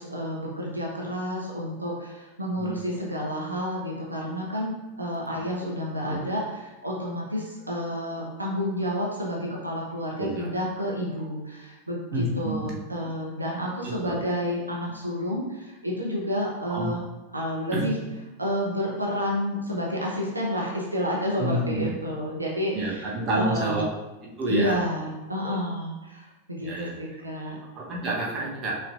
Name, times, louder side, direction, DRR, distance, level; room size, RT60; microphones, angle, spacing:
voice 1, 0.0-17.0 17.3-18.0 18.4-23.9 24.5-27.6, equal, 80° right, -2 dB, 0.7 m, -30 dB
voice 2, 10.2-10.5 12.1-12.8 13.8-14.2 16.7-16.9 17.7-17.9 21.4-22.0 22.7-23.9 24.2-24.8 25.4-25.6 26.6-26.9 27.8-28.7, right 1 dB, 30° right, -3 dB, 1.1 m, -29 dB
5.6 x 3.3 x 2.5 m, 1.1 s
figure-of-eight pair, 90°, 0 cm